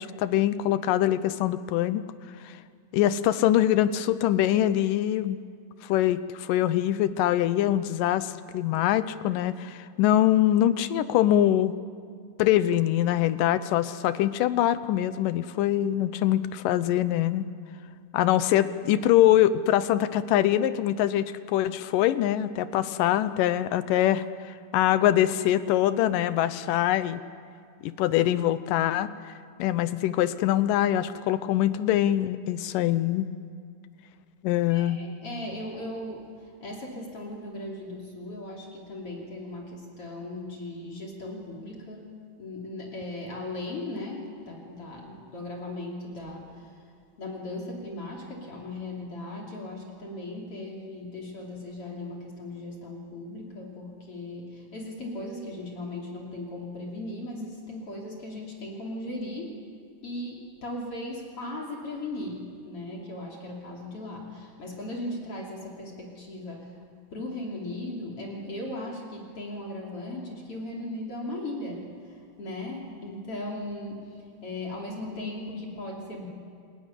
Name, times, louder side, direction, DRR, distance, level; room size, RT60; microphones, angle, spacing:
voice 1, 0.0-2.0 2.4-2.5 2.9-5.4 5.8-11.8 12.4-17.5 18.1-27.2 27.8-29.3 29.6-33.3 34.4-35.0, left 12 dB, 80° left, 14 dB, 2.4 m, -24 dB
voice 2, 34.7-42.1 42.4-46.8 47.2-59.6 60.0-66.8 67.1-76.3, left 1 dB, 45° left, -1 dB, 3.7 m, -37 dB
28.0 x 15.0 x 9.9 m, 2.2 s
omnidirectional pair, 3.8 m